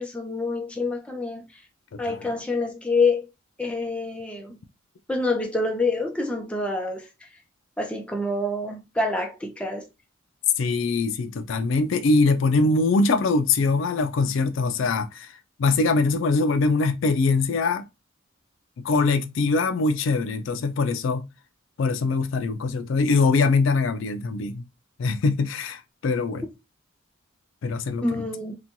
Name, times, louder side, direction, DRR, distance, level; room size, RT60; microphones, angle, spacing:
voice 1, 0.0-1.5 2.0-3.3 3.6-4.6 5.1-7.1 7.8-9.9 28.0-28.6, left 3 dB, 5° left, 0.5 m, -27 dB
voice 2, 10.6-15.3 15.6-17.9 18.8-21.3 21.8-24.6 25.0-26.4 27.6-28.0, left 3 dB, 70° left, 0.4 m, -22 dB
2.9 x 2.2 x 2.5 m
head